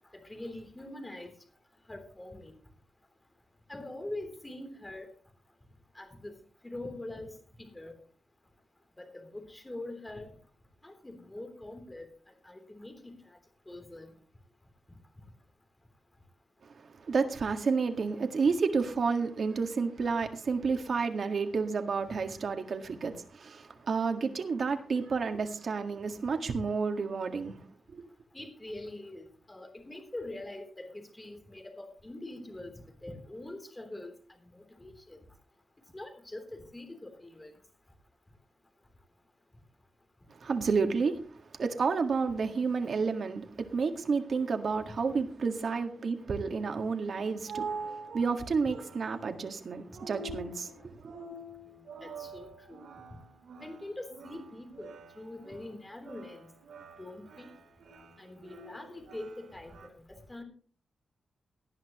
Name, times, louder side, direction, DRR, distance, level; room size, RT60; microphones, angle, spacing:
voice 1, 0.2-1.3 1.9-2.6 3.7-5.1 5.9-6.3 6.6-7.3 7.6-7.9 9.0-10.3 10.8-12.1 12.4-13.1 13.7-14.1 22.1-22.2 28.3-34.1 34.4-35.2 35.9-37.5 52.0-52.8 53.6-56.5 57.0-57.5 58.2-60.4, left 1 dB, 15° left, 3.4 m, -43 dB
voice 2, 16.8-27.6 27.9-28.0 40.3-41.2 41.5-51.1, right 5 dB, 55° right, 1.8 m, -31 dB
sound 1, 47.0-59.9, right 3 dB, 85° right, 3.9 m, -46 dB
18.5 x 11.0 x 3.1 m
wide cardioid pair, 115°, 0 cm